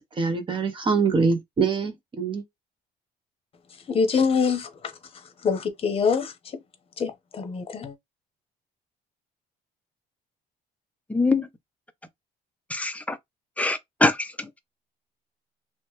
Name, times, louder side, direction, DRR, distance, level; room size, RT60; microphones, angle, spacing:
voice 1, 0.0-2.4, right 5 dB, 30° right, 0.8 m, -24 dB
voice 2, 3.9-6.6 7.0-7.9, left 5 dB, 35° left, 0.8 m, -25 dB
voice 3, 11.1-11.5 12.7-13.2 13.6-14.5, left 2 dB, 10° left, 0.5 m, -24 dB
3.0 x 2.1 x 3.0 m
cardioid pair, 110°, 17 cm